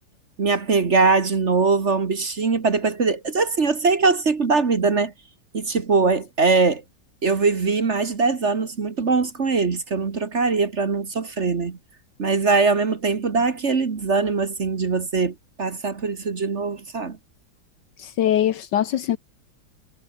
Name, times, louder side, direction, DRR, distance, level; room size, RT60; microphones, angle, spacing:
voice 1, 0.4-5.1 5.5-6.8 7.2-11.8 12.2-17.2, right 4 dB, 35° right, 1.6 m, -21 dB
voice 2, 18.0-19.2, left 11 dB, 65° left, 1.3 m, -22 dB
omnidirectional pair, 2.3 m